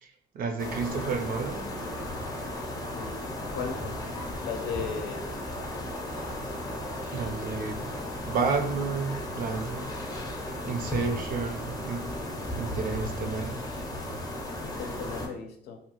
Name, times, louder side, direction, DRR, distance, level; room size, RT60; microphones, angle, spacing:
voice 1, 0.0-1.8 7.1-7.9 8.3-9.9 10.6-13.6, right 4 dB, 55° right, 5 dB, 0.5 m, -31 dB
sound 1, 0.6-15.3, left 1 dB, 20° left, 0.6 m, -35 dB
voice 2, 2.9-4.0 4.4-5.2 14.6-15.8, left 6 dB, 80° left, 4 dB, 0.6 m, -36 dB
2.7 x 2.3 x 2.9 m, 0.66 s
cardioid pair, 110°, 17 cm